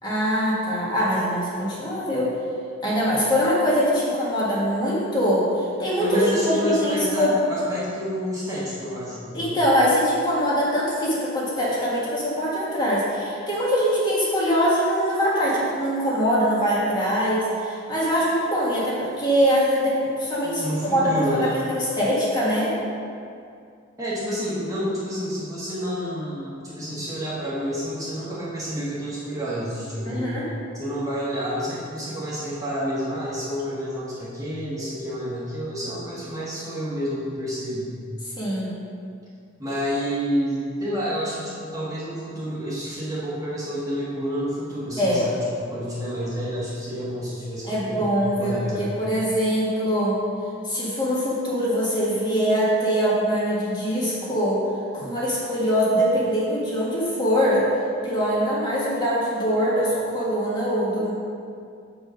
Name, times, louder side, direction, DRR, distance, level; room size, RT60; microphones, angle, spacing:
voice 1, 0.0-2.3 2.8-5.5 5.8-7.3 9.3-22.7 30.0-30.4 38.4-38.8 45.0-45.2 47.7-50.2 50.6-54.6 54.9-57.7 58.0-61.1, equal, 20° left, -7 dB, 1.7 m, -23 dB
voice 2, 6.0-9.6 20.4-21.6 24.0-30.3 30.7-37.9 39.6-48.1 48.4-48.9, equal, 15° right, -9 dB, 1.5 m, -29 dB
7.1 x 5.0 x 5.2 m, 2.4 s
head